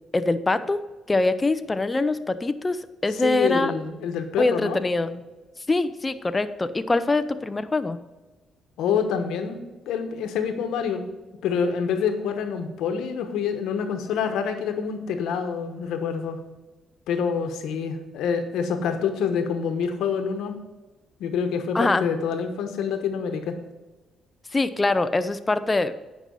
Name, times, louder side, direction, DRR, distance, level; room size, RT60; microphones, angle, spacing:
voice 1, 0.1-0.8 1.1-3.7 4.4-5.2 5.7-8.0 21.7-22.1 24.5-25.9, left 2 dB, 20° left, 11 dB, 0.5 m, -23 dB
voice 2, 3.2-4.8 8.8-9.6 9.9-11.0 11.4-16.4 17.1-20.6 21.2-23.5, left 6 dB, 85° left, 7 dB, 1.1 m, -26 dB
9.2 x 5.4 x 5.4 m, 1.2 s
cardioid pair, 90°, 0 cm